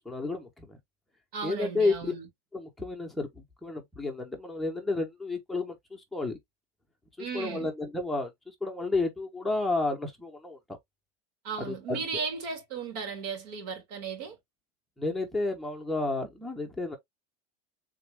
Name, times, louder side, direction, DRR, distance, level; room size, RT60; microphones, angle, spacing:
voice 1, 0.0-0.8 1.4-2.1 2.5-6.4 7.2-8.3 8.6-10.8 11.6-12.0 15.0-17.0, left 3 dB, ahead, 0.9 m, -31 dB
voice 2, 1.3-2.3 7.2-7.7 11.4-14.4, right 5 dB, 80° right, 2.5 m, -35 dB
3.6 x 2.6 x 3.3 m
supercardioid pair, 135°, 20 cm